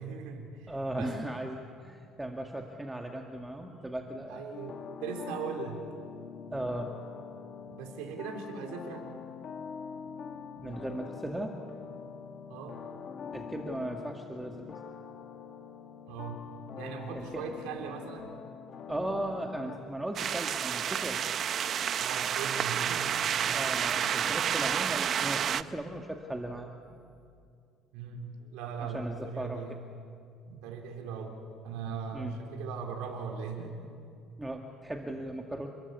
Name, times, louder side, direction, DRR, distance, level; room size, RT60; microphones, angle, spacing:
voice 1, 0.0-1.1 4.3-5.8 7.6-9.1 10.0-10.1 12.5-12.9 16.1-16.5 16.8-18.3 22.0-23.5 24.0-24.1 25.7-25.8 27.9-29.8 30.5-31.4 31.6-33.9, right 5 dB, 90° right, 1 dB, 4.1 m, -39 dB
voice 2, 0.7-4.6 6.5-6.9 10.6-11.5 13.3-14.8 17.1-17.5 18.9-21.2 23.5-26.7 28.8-29.6 32.1-32.3 34.4-35.7, right 1 dB, 10° right, 2 dB, 1.9 m, -37 dB
sound 1, 4.5-19.8, left 6 dB, 50° left, 2.2 m, -44 dB
sound 2, 20.2-25.6, right 9 dB, 50° right, 0.8 m, -30 dB
30.0 x 21.5 x 8.4 m, 2.4 s
cardioid pair, 110°, 0 cm